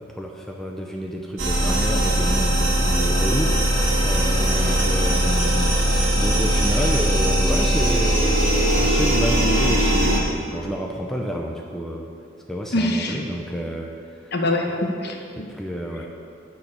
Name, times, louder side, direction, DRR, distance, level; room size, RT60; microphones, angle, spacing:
voice 1, 0.0-5.8 6.1-12.1 12.5-14.3 15.4-16.1, equal, ahead, 0 dB, 0.6 m, -29 dB
sound 1, 1.4-10.2, right 1 dB, 80° right, 1.8 m, -20 dB
sound 2, 2.9-10.1, right 1 dB, 40° right, 2.3 m, -40 dB
voice 2, 12.7-13.2 14.3-15.5, left 1 dB, 50° left, 2 dB, 1.1 m, -24 dB
12.0 x 4.6 x 8.4 m, 2.4 s
head